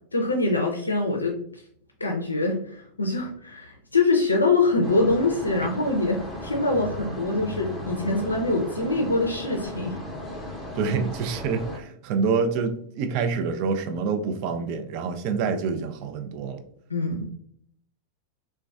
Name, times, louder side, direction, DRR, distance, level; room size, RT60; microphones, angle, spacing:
voice 1, 0.1-1.6 2.0-10.0 16.9-17.3, left 3 dB, 80° left, 1 dB, 0.4 m, -24 dB
sound 1, 4.8-11.8, left 1 dB, 5° right, 0.7 m, -36 dB
voice 2, 10.7-16.6, right 5 dB, 45° right, 8 dB, 0.4 m, -27 dB
3.9 x 2.2 x 2.3 m, 0.65 s
figure-of-eight pair, 90°, 0 cm